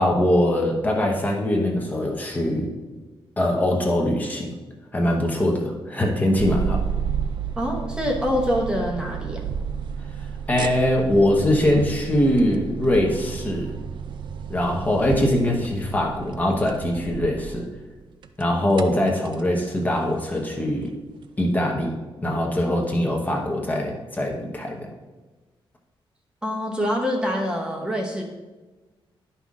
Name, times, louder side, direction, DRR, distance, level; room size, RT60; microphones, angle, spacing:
voice 1, 0.0-2.7 3.4-4.6 4.9-6.8 10.5-13.8 14.5-17.7 18.4-20.9 21.4-21.9 22.2-24.9, left 1 dB, 15° left, 0 dB, 1.0 m, -22 dB
sound 1, 6.4-17.9 18.2-19.6 19.9-20.2 20.9-21.0 21.4-21.5, right 7 dB, 60° right, 0.5 m, -31 dB
voice 2, 7.6-9.4 26.4-28.2, equal, 10° right, -1 dB, 0.9 m, -25 dB
10.5 x 5.6 x 3.7 m, 1.2 s
wide cardioid pair, 180°, 9 cm